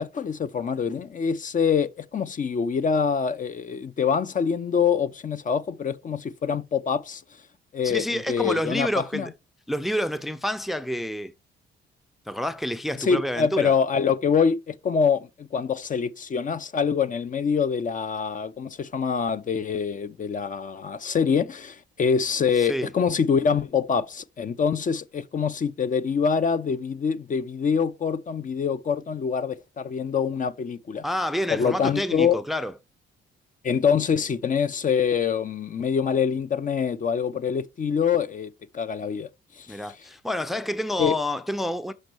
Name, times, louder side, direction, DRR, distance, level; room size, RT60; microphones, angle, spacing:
voice 1, 0.0-7.2 7.7-9.3 13.0-31.0 31.5-32.4 33.6-39.3 39.6-39.8 41.0-41.2, left 6 dB, 40° left, 0.6 m, -25 dB
voice 2, 7.8-9.3 9.7-11.3 12.3-13.7 22.6-22.9 31.0-32.7 39.7-41.9, left 1 dB, ahead, 0.5 m, -28 dB
6.4 x 5.4 x 4.5 m
cardioid pair, 90°, 20 cm